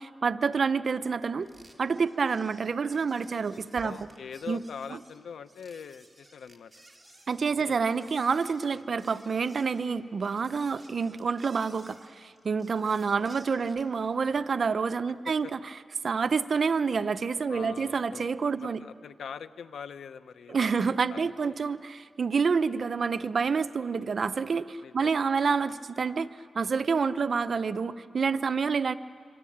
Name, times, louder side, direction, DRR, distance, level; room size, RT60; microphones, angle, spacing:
voice 1, 0.0-1.5 1.8-4.1 4.5-4.6 7.3-15.6 16.0-18.8 20.5-29.0, right 5 dB, 50° right, 12 dB, 0.7 m, -28 dB
sound 1, 1.4-13.9, right 1 dB, 10° right, 2.4 m, -56 dB
voice 2, 3.8-6.7 7.6-8.1 8.7-8.8 13.2-13.7 15.4-15.5 17.5-18.3 18.6-21.5 24.8-25.1 25.5-25.6, left 6 dB, 85° left, 12 dB, 0.9 m, -43 dB
26.0 x 25.0 x 8.7 m, 2.4 s
wide cardioid pair, 120°, 0 cm